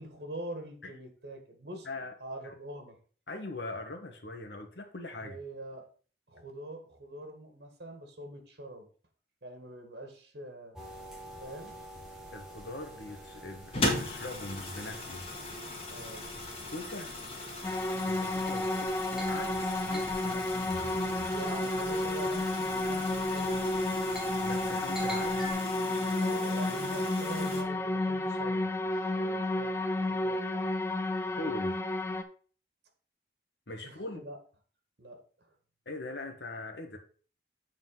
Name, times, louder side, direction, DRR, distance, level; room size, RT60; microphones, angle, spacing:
voice 1, 0.0-1.9 2.2-3.0 5.2-5.9 6.3-8.9 9.4-10.8 11.4-11.8 15.9-16.3 21.3-23.8 26.2-29.7 30.1-30.7 33.8-34.4 35.0-35.5, right 1 dB, 70° right, 4 dB, 1.8 m, -44 dB
voice 2, 3.3-5.4 12.3-15.3 16.7-17.2 18.0-20.4 24.4-25.5 31.4-31.7 33.7-34.2 35.8-37.0, left 2 dB, 85° left, 5 dB, 1.5 m, -41 dB
sound 1, 10.8-25.5, right 2 dB, 5° right, 1.9 m, -44 dB
sound 2, 13.7-27.6, left 2 dB, 35° left, 1.9 m, -39 dB
sound 3, 17.6-32.2, left 2 dB, 15° left, 0.5 m, -31 dB
7.7 x 4.3 x 5.6 m, 0.42 s
head